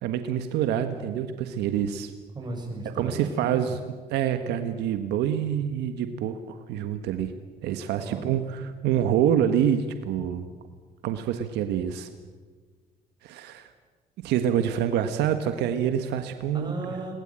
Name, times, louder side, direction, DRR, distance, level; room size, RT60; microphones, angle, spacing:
voice 1, 0.0-2.1 2.9-3.8 4.1-7.3 7.6-10.5 11.0-12.1 13.2-13.7 14.2-16.7, right 9 dB, 85° right, 8 dB, 1.5 m, -26 dB
voice 2, 2.3-3.8 8.0-8.2 16.5-17.1, right 2 dB, 25° right, 2 dB, 7.5 m, -35 dB
22.0 x 20.0 x 8.9 m, 1.4 s
cardioid pair, 110°, 17 cm